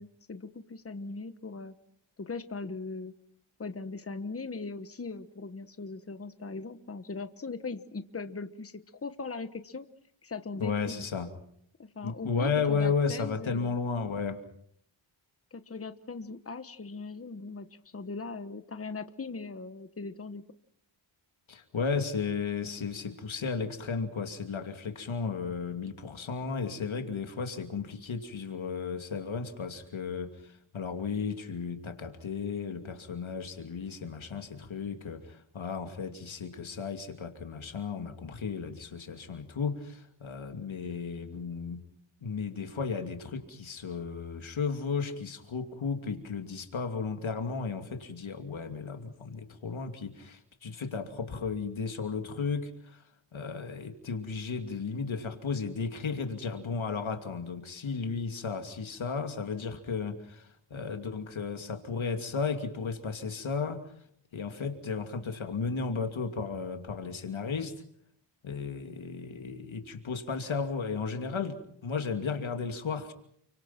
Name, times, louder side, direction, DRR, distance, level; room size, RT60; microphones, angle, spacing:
voice 1, 0.0-1.7 2.2-3.1 3.6-9.9 10.2-11.0 11.8-13.7 15.5-17.7 17.9-20.4, left 4 dB, 30° left, 10 dB, 1.3 m, -39 dB
voice 2, 10.6-11.3 12.0-14.4 21.5-41.8 42.2-53.0 53.3-63.8 64.3-67.8 68.4-73.1, left 5 dB, 70° left, 6 dB, 2.7 m, -34 dB
29.5 x 24.5 x 5.9 m, 0.67 s
wide cardioid pair, 135°, 49 cm